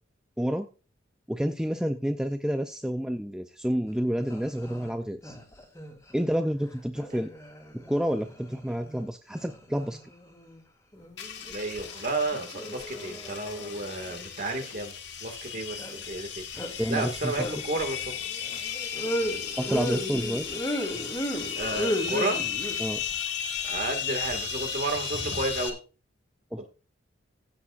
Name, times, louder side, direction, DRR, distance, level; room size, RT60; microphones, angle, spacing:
voice 1, 1.3-5.4 6.1-7.3 7.7-10.0 16.8-17.5 19.6-20.5 22.8-23.0 26.5-26.7, equal, 5° right, 7 dB, 0.4 m, -29 dB
sound 1, 3.9-4.0 4.2-4.9 5.2-6.1 6.9-9.0 9.4-10.6 10.9-11.9 12.2-14.6 15.8-16.0 16.5-17.0 17.3-22.7, equal, 15° left, 2.4 m, -35 dB
sound 2, 11.2-25.7, left 7 dB, 60° left, 1.6 m, -35 dB
voice 2, 11.4-14.9 15.2-18.1 21.6-22.4 23.6-25.8, right 2 dB, 45° right, 5 dB, 1.9 m, -32 dB
15.5 x 8.6 x 2.5 m, 0.34 s
head